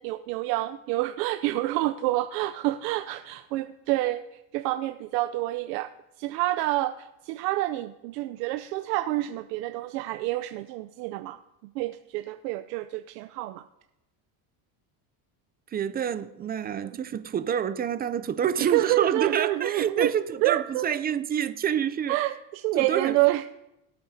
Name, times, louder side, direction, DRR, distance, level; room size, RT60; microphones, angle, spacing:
voice 1, 0.0-5.9 6.2-11.4 11.7-13.6 16.8-17.0 18.6-20.1 20.4-20.8 22.1-23.4, right 17 dB, 90° right, 0.6 m, -28 dB
voice 2, 15.7-22.2 22.7-23.2, right 8 dB, 25° right, 0.3 m, -27 dB
22.0 x 8.7 x 2.7 m
supercardioid pair, 120°, 48 cm